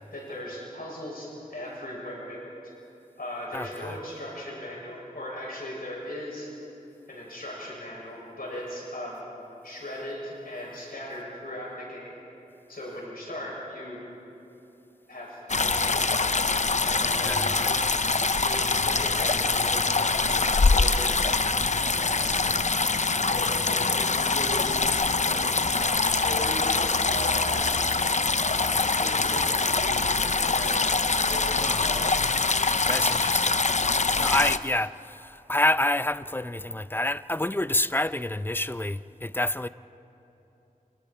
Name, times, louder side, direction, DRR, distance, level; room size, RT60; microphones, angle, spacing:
voice 1, 0.1-2.5 3.2-6.5 7.1-9.2 9.6-12.2 12.7-14.0 15.1-16.5 16.8-18.0 18.4-20.5 20.7-21.1 22.0-22.5 23.3-24.9 25.3-25.5 25.8-27.9 28.4-30.9 31.2-32.3, left 1 dB, 90° left, 6.9 m, -38 dB
voice 2, 3.5-4.0 17.2-17.5 31.6-31.8 32.9-33.6 34.2-39.7, left 1 dB, 15° left, 0.5 m, -28 dB
sound 1, 15.5-34.6, left 3 dB, 55° left, 0.6 m, -24 dB
28.0 x 28.0 x 4.5 m
wide cardioid pair, 60°, 15 cm